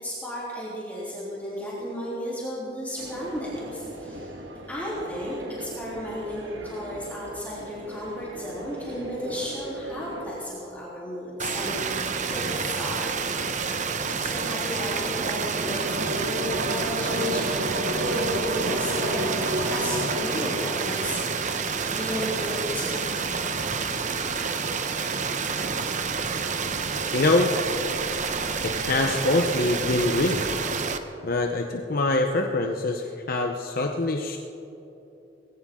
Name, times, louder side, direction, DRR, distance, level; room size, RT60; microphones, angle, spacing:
voice 1, 0.0-4.3 4.7-13.2 14.1-21.6 21.9-23.5, equal, 10° left, -8 dB, 3.4 m, -34 dB
sound 1, 3.0-10.4, right 1 dB, 90° right, 1.8 m, -40 dB
sound 2, 11.4-31.0, right 5 dB, 45° right, 0.9 m, -29 dB
sound 3, 14.2-22.1, right 1 dB, 70° right, 1.4 m, -32 dB
voice 2, 27.1-27.5 28.6-30.5 31.2-34.4, left 2 dB, 55° left, 3 dB, 0.9 m, -24 dB
20.5 x 16.5 x 3.8 m, 2.9 s
head